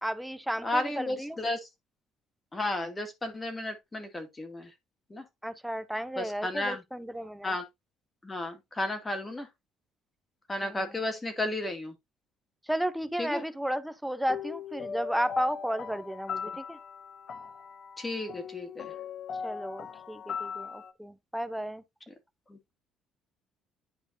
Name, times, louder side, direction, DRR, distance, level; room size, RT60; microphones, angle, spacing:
voice 1, 0.0-1.4 5.4-7.5 10.6-10.9 12.7-16.8 19.4-21.8, equal, 5° right, 0.6 m, -33 dB
voice 2, 0.6-1.6 2.5-4.7 5.1-5.2 6.2-6.8 7.4-7.6 8.2-9.5 10.5-11.9 13.2-13.4 18.0-18.9 22.5-22.6, left 1 dB, 20° left, 2.2 m, -33 dB
sound 1, 14.3-20.9, left 6 dB, 50° left, 0.8 m, -39 dB
10.5 x 5.2 x 2.6 m
cardioid pair, 115°, 0 cm